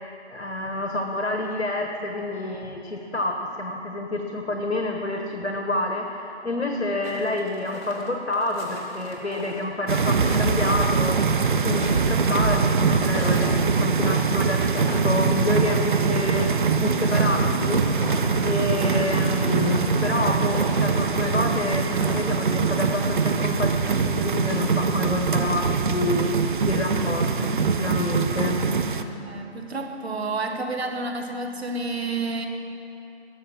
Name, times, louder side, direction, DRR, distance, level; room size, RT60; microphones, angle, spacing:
voice 1, 0.0-17.9 18.4-27.5 27.8-28.6, left 2 dB, 85° left, 3 dB, 1.3 m, -28 dB
sound 1, 7.0-9.7 10.1-12.7 13.2-15.2 15.5-15.9 16.3-23.2 23.7-24.8 25.1-25.7, left 1 dB, 60° left, 3.0 m, -39 dB
sound 2, 9.9-29.0, right 5 dB, 45° right, 0.6 m, -23 dB
voice 2, 29.1-32.5, right 3 dB, 65° right, 4 dB, 1.6 m, -30 dB
18.5 x 6.8 x 5.9 m, 3.0 s
figure-of-eight pair, 150°, 34 cm